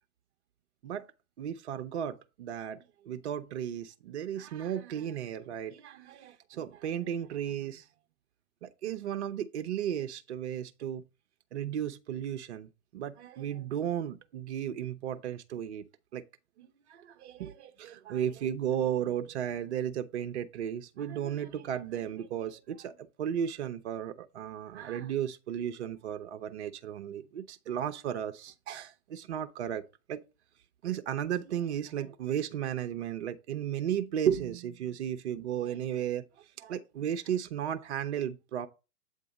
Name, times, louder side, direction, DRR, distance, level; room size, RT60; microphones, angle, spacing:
voice 1, 1.4-2.8 3.0-7.8 8.6-11.0 11.5-15.8 16.1-16.2 16.6-29.8 30.1-30.2 30.8-36.2 36.6-38.7, right 9 dB, 50° right, 0.6 m, -34 dB
7.9 x 2.7 x 5.0 m
figure-of-eight pair, 120°, 46 cm